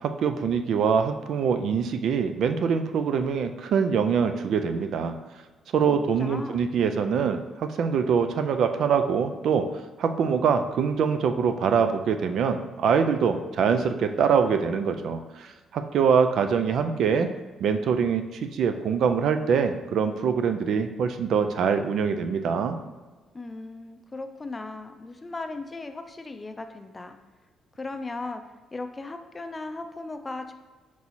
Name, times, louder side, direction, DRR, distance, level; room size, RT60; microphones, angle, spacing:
voice 1, 0.0-5.2 5.7-9.7 10.0-17.3 17.6-22.8, right 6 dB, 70° right, 7 dB, 0.3 m, -24 dB
voice 2, 5.9-6.7 23.3-27.2 27.8-28.4 28.7-30.5, left 3 dB, 25° left, 7 dB, 0.4 m, -37 dB
4.6 x 2.8 x 4.1 m, 1.3 s
cardioid pair, 90°, 0 cm